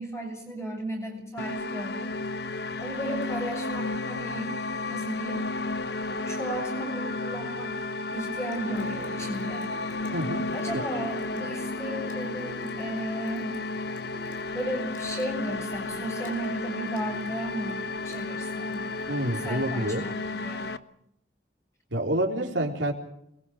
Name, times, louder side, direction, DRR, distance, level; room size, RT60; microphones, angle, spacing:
voice 1, 0.0-2.2 2.8-4.5 4.9-5.5 6.3-7.8 8.1-9.8 10.5-13.6 14.5-18.9 19.4-20.8, right 1 dB, 15° left, 1 dB, 7.1 m, -35 dB
sound 1, 1.4-20.8, left 3 dB, 65° left, 0.9 m, -33 dB
Water tap faucet / Sink (filling or washing) / Drip, 8.5-19.3, equal, 45° left, 5.6 m, -49 dB
voice 2, 10.1-10.5 19.1-20.0 21.9-22.9, right 1 dB, 90° right, 1 dB, 3.8 m, -28 dB
28.5 x 21.5 x 5.1 m, 0.74 s
head